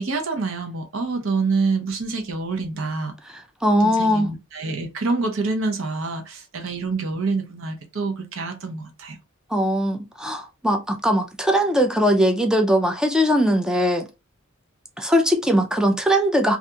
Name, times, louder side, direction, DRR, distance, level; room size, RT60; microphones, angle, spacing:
voice 1, 0.0-3.1 3.8-9.2, right 3 dB, 65° right, 0.7 m, -26 dB
voice 2, 3.6-4.3 9.5-14.1 15.0-16.6, equal, 5° right, 0.3 m, -20 dB
2.8 x 2.5 x 2.2 m
head